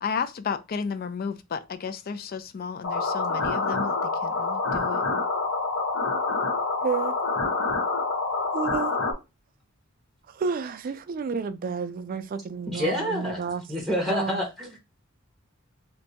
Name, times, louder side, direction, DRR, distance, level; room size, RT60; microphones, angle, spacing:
voice 1, 0.0-5.0, left 6 dB, 45° left, 0.3 m, -33 dB
sound 1, 2.8-9.1, left 3 dB, 70° left, 0.9 m, -27 dB
voice 2, 6.8-7.2 8.5-8.9 10.3-13.6 14.1-14.4, right 5 dB, 40° right, 0.3 m, -30 dB
voice 3, 12.7-14.8, equal, ahead, 0.7 m, -28 dB
2.6 x 2.2 x 3.9 m
head